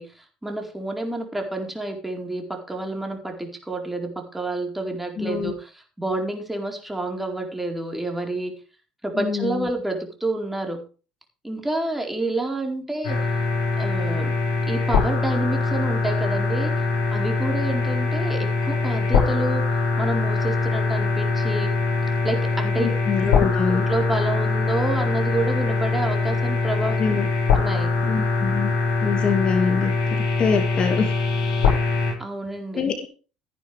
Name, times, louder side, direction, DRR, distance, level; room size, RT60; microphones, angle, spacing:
voice 1, 0.0-8.5 9.0-10.8 11.4-13.3 13.8-14.3 14.7-16.7 17.1-19.6 20.0-21.7 22.2-22.9 23.7-27.0 27.5-27.9 32.2-32.9, right 2 dB, 10° right, 2 dB, 4.5 m, -29 dB
voice 2, 5.2-5.5 9.2-9.7 22.8-23.9 27.0-27.3 28.0-28.7 29.0-31.1 32.8-33.1, left 6 dB, 40° left, 7 dB, 2.1 m, -24 dB
sound 1, 13.0-32.1, left 4 dB, 65° left, 7.8 m, -23 dB
15.0 x 10.5 x 3.5 m, 0.35 s
hypercardioid pair, 60°, 2 cm